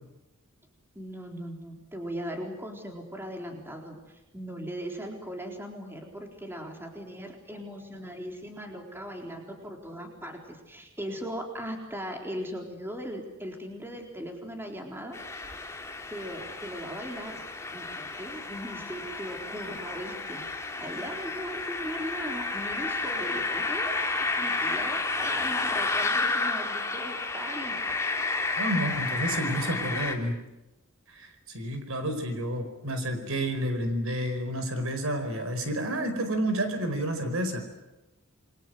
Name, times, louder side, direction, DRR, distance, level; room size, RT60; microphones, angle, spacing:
voice 1, 1.0-15.2 15.6-15.8 16.1-17.4 17.7-20.4 20.8-27.9, equal, 10° right, 2 dB, 4.0 m, -39 dB
sound 1, 15.1-30.1, left 3 dB, 15° left, 2.8 m, -31 dB
voice 2, 28.6-30.4 31.1-37.6, right 1 dB, 70° right, 8 dB, 4.7 m, -30 dB
28.5 x 23.0 x 7.8 m, 1.0 s
head